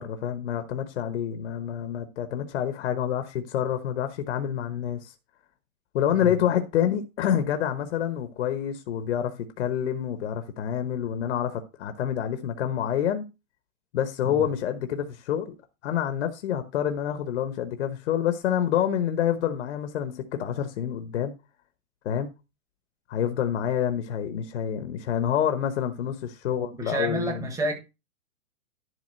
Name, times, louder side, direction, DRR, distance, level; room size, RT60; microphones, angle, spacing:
voice 1, 0.0-5.1 5.9-13.3 13.9-15.5 15.8-21.3 22.0-22.3 23.1-27.4, left 9 dB, 50° left, 1.1 m, -27 dB
voice 2, 26.4-27.7, right 1 dB, 5° right, 1.4 m, -30 dB
11.0 x 3.6 x 6.4 m
hypercardioid pair, 155°, 44 cm